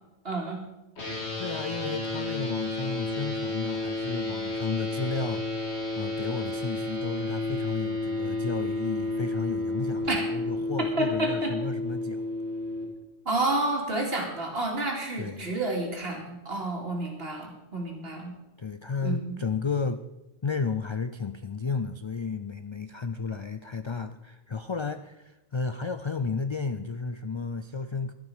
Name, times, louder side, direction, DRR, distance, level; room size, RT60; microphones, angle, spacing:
voice 1, 0.2-0.6 10.0-10.2 11.0-11.5 13.2-18.3 19.0-19.4, right 2 dB, 65° right, 0 dB, 2.8 m, -30 dB
sound 1, 1.0-12.8, left 2 dB, 75° left, 2.9 m, -31 dB
voice 2, 1.4-5.5 6.0-12.2 15.2-15.5 18.6-20.0 20.4-28.1, left 4 dB, 45° left, 10 dB, 0.3 m, -33 dB
12.0 x 11.5 x 4.9 m, 0.99 s
omnidirectional pair, 1.1 m